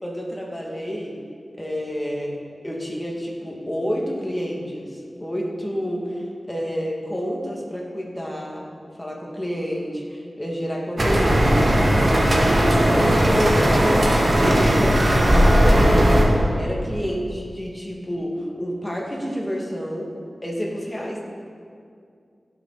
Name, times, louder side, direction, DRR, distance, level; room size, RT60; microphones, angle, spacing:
voice 1, 0.0-1.2 1.5-2.4 2.6-8.7 9.0-20.1 20.4-21.2, equal, 15° left, -3 dB, 2.5 m, -29 dB
sound 1, 11.0-16.2, equal, 40° right, 2.1 m, -17 dB
16.5 x 7.2 x 4.2 m, 2.3 s
cardioid pair, 45°, 0 cm